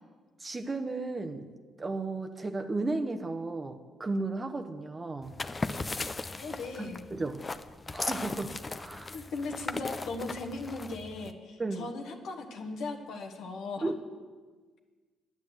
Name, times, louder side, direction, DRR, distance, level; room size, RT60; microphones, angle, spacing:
voice 1, 0.4-1.5 1.8-5.3 6.8-7.4 7.9-9.2 11.6-11.9 13.8-13.9, right 3 dB, 25° right, 7 dB, 0.9 m, -34 dB
sound 1, 5.2-11.3, left 3 dB, 25° left, 0.6 m, -37 dB
voice 2, 6.4-7.0 9.1-13.9, left 3 dB, 80° left, 2 dB, 1.4 m, -38 dB
9.7 x 9.6 x 7.9 m, 1.4 s
cardioid pair, 90°, 0 cm